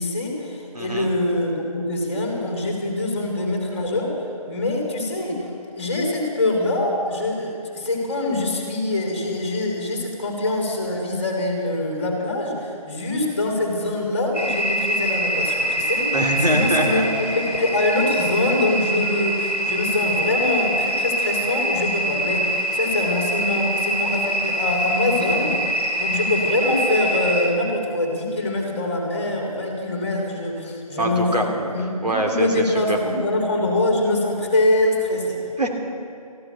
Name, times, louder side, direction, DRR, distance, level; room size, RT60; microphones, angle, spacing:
voice 1, 0.0-4.2 4.5-5.5 5.8-16.2 16.5-35.4, left 2 dB, 20° left, 0 dB, 2.1 m, -24 dB
voice 2, 0.7-1.1 16.1-17.1 31.0-31.4 32.0-33.0 35.6-35.7, right 1 dB, 85° right, 1 dB, 2.8 m, -23 dB
sound 1, 14.3-27.5, right 1 dB, ahead, 0.7 m, -24 dB
14.0 x 12.0 x 6.8 m, 2.4 s
figure-of-eight pair, 175°, 20 cm